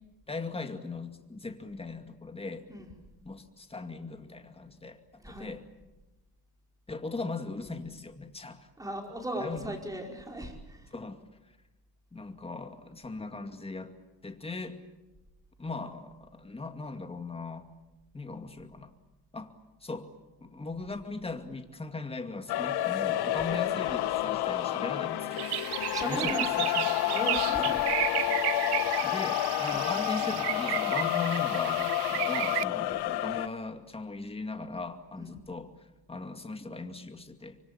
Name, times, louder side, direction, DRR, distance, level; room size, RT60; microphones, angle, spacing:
voice 1, 0.3-2.7 3.2-5.6 6.9-8.7 9.4-9.8 10.9-11.2 12.1-13.9 14.2-14.8 15.6-17.7 18.1-18.9 19.3-19.6 19.8-20.1 20.4-25.5 26.0-26.9 27.7-27.8 29.0-35.7 36.1-37.6, left 3 dB, 15° left, 7 dB, 2.3 m, -39 dB
voice 2, 5.2-5.5 8.8-10.9 23.4-23.7 25.9-26.5 27.0-28.1 28.6-28.9 29.7-29.9 35.2-35.3, right 1 dB, 10° right, 2 dB, 5.1 m, -38 dB
sound 1, 22.5-33.5, left 14 dB, 70° left, 1.4 m, -29 dB
sound 2, 25.3-32.6, right 17 dB, 75° right, 0.9 m, -33 dB
25.5 x 24.5 x 8.8 m, 1.1 s
cardioid pair, 115°, 40 cm